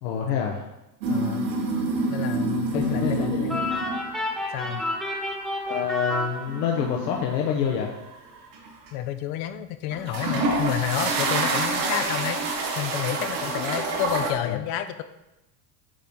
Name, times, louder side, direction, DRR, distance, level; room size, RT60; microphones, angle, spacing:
voice 1, 0.0-0.6 2.7-3.7 5.7-7.9 14.4-14.6, left 8 dB, 75° left, 0 dB, 1.0 m, -27 dB
sound 1, 1.0-4.2 4.6-5.0 6.5-8.1 8.5-8.9 9.9-14.3, right 2 dB, 85° right, 1.5 m, -27 dB
voice 2, 1.1-1.5 2.1-3.6 4.5-4.8 8.9-12.4 12.8-15.0, left 11 dB, 55° left, 10 dB, 0.7 m, -30 dB
sound 2, 3.5-7.0, left 1 dB, ahead, 1.2 m, -30 dB
9.0 x 3.9 x 3.7 m, 0.96 s
supercardioid pair, 105°, 50 cm